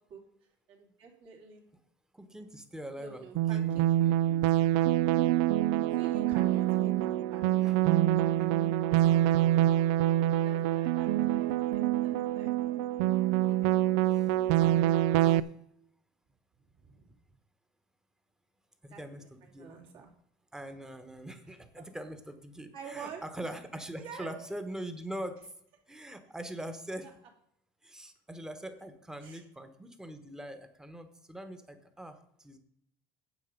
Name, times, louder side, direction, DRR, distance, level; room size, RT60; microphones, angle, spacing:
voice 1, 0.7-1.6 2.9-4.5 5.8-7.7 10.4-11.5 11.7-12.5 13.3-14.0 16.8-17.1 18.9-20.1 21.5-21.8 22.7-23.2 24.0-24.5 29.2-29.4, right 6 dB, 60° right, 0 dB, 3.1 m, -48 dB
voice 2, 2.1-3.9 7.7-7.8 8.4-8.7 14.1-14.3 15.2-15.5 18.8-19.7 20.5-25.5 25.9-27.1 27.8-32.6, right 1 dB, 5° right, 9 dB, 1.1 m, -43 dB
sound 1, 3.3-15.4, right 13 dB, 90° right, 0.4 m, -26 dB
9.2 x 8.0 x 5.2 m, 0.71 s
cardioid pair, 140°, 10 cm